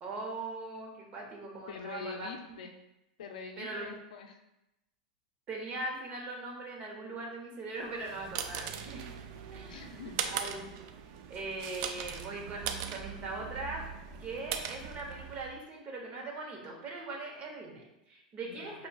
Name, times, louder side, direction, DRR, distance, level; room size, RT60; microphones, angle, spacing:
voice 1, 0.0-2.3 3.6-3.9 5.5-9.1 9.5-9.8 10.3-10.6 11.3-13.8 14.2-18.9, right 3 dB, 35° right, -1 dB, 1.1 m, -40 dB
voice 2, 1.7-2.7 3.2-4.4 9.7-10.2 18.4-18.8, left 6 dB, 75° left, 5 dB, 0.5 m, -44 dB
sound 1, 7.8-15.6, right 8 dB, 55° right, 0.4 m, -40 dB
5.8 x 2.4 x 2.4 m, 0.89 s
hypercardioid pair, 110°, 4 cm